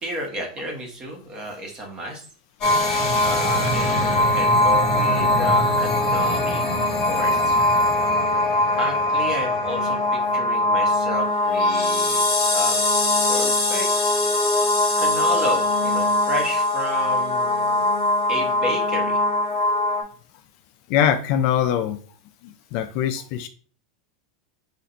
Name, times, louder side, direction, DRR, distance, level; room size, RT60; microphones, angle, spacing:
voice 1, 0.0-2.3 3.2-6.7 7.1-7.6 8.8-12.3 12.5-12.8 13.3-13.9 15.0-17.9 18.3-19.2, equal, 20° right, 1 dB, 1.1 m, -32 dB
sound 1, 2.6-20.0, left 2 dB, 25° left, 1.4 m, -21 dB
voice 2, 20.9-22.0 22.4-23.5, left 9 dB, 45° left, 8 dB, 0.3 m, -22 dB
3.9 x 2.4 x 4.2 m, 0.42 s
supercardioid pair, 165°, 3 cm